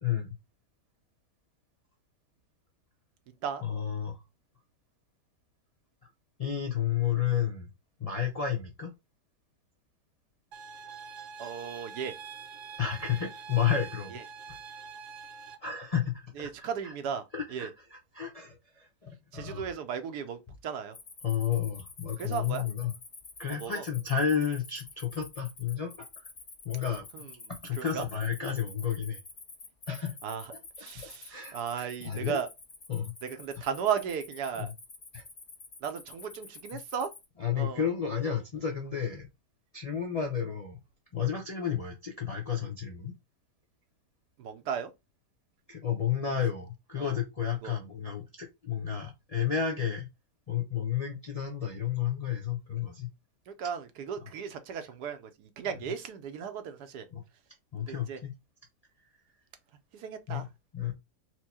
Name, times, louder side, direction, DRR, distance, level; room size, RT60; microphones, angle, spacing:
voice 1, 0.0-0.4 3.6-4.2 6.4-7.7 8.0-8.9 12.8-14.2 15.6-16.9 17.3-17.7 18.1-19.6 21.2-22.9 23.4-26.2 26.6-27.1 27.6-29.2 29.9-30.2 30.5-30.6 31.0-32.4 32.9-33.1 34.6-34.7 35.1-35.2 37.4-39.3 39.7-40.8 41.1-43.1 45.7-50.1 50.5-53.1 57.1-57.2 57.7-58.3 60.3-60.5 60.7-60.9, left 8 dB, 50° left, 0.4 m, -31 dB
sound 1, 10.5-15.6, right 6 dB, 60° right, 0.9 m, -45 dB
voice 2, 11.4-12.1 14.1-14.2 16.4-17.7 19.3-21.0 22.2-22.6 23.5-23.8 27.1-28.1 30.2-30.5 30.8-32.5 33.2-34.7 35.8-37.1 37.5-37.9 44.4-44.9 46.3-46.4 47.0-47.2 47.6-47.7 53.5-57.1 57.8-58.2 59.9-60.5, right 7 dB, 85° right, 1.3 m, -36 dB
Cricket, 20.9-37.3, left 3 dB, 35° left, 1.0 m, -49 dB
4.5 x 2.2 x 4.2 m
omnidirectional pair, 1.7 m